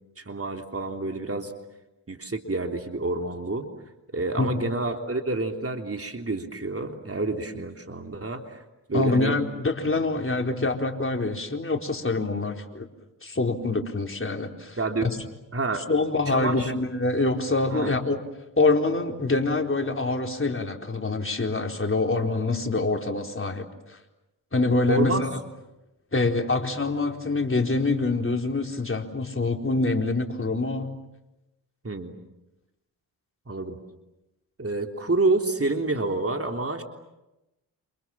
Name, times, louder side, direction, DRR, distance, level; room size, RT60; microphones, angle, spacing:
voice 1, 0.2-1.5 2.1-3.7 4.1-8.6 8.9-9.4 14.8-15.1 15.5-15.9 16.3-16.7 17.7-18.0 24.9-25.3 31.8-32.1 33.5-33.8 34.6-36.8, right 3 dB, 30° right, 4 dB, 3.5 m, -28 dB
voice 2, 4.4-4.7 8.9-12.9 13.2-15.2 15.9-18.2 18.6-24.0 24.5-25.4 26.1-31.0, left 3 dB, 25° left, 3 dB, 4.4 m, -25 dB
28.5 x 28.5 x 7.4 m, 0.97 s
hypercardioid pair, 40°, 47 cm